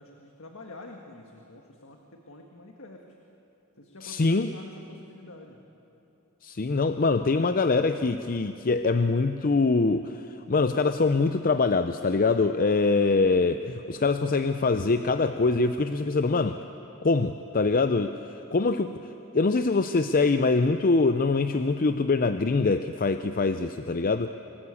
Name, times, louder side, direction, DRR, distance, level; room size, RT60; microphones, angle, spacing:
voice 1, 0.0-3.2 3.8-5.6, left 2 dB, 65° left, 2 dB, 1.8 m, -47 dB
voice 2, 4.0-4.5 6.4-16.6 17.0-18.2 18.5-19.0 19.3-24.3, left 3 dB, 40° left, 9 dB, 0.6 m, -24 dB
26.0 x 19.5 x 8.4 m, 2.9 s
head